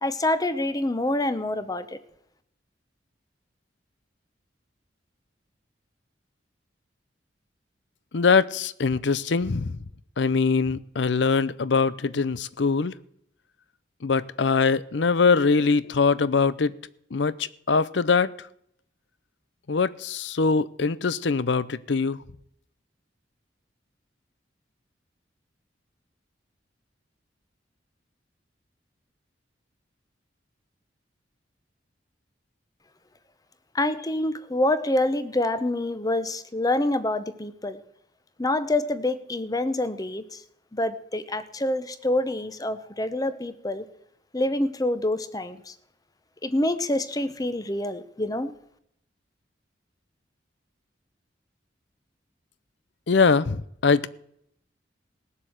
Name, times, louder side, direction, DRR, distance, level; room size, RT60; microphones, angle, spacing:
voice 1, 0.0-2.0 33.7-37.8 38.4-40.4 40.7-43.8 44.3-45.7 46.4-48.5, left 1 dB, 20° left, 0.9 m, -26 dB
voice 2, 8.1-9.8 10.2-12.9 14.0-16.7 17.1-18.3 19.7-22.2 53.1-54.1, left 4 dB, 75° left, 0.6 m, -22 dB
19.0 x 7.7 x 7.9 m
head